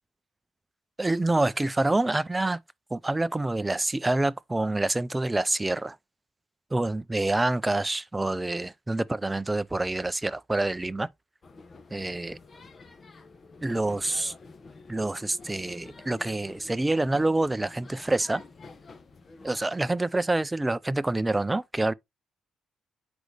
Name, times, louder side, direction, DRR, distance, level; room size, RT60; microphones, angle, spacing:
voice 1, 1.0-2.6 2.9-6.0 6.7-11.1 11.9-12.4 13.6-14.3 14.9-18.4 19.4-21.9, right 2 dB, 15° right, 0.5 m, -27 dB
sound 1, 11.4-19.7, left 3 dB, 35° left, 1.1 m, -49 dB
7.9 x 5.2 x 3.3 m
cardioid pair, 90°, 0 cm